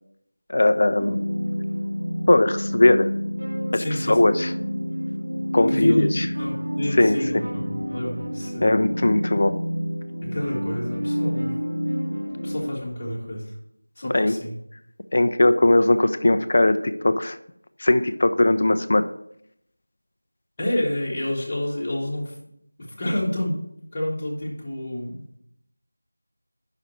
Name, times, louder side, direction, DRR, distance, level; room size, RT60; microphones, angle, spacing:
voice 1, 0.5-1.2 2.3-3.1 3.7-4.5 5.5-6.3 7.0-7.4 8.6-9.6 14.0-14.4 15.1-17.4 17.8-19.1, left 1 dB, 40° left, 10 dB, 0.3 m, -19 dB
sound 1, 1.0-12.7, equal, 60° right, 1.3 m, -28 dB
voice 2, 3.7-4.2 5.7-8.7 10.2-11.5 12.4-13.5 14.0-14.5 20.6-22.4 22.8-23.6 23.9-25.3, left 1 dB, 15° left, -9 dB, 1.2 m, -29 dB
5.7 x 4.6 x 6.3 m, 0.73 s
figure-of-eight pair, 175°, 0 cm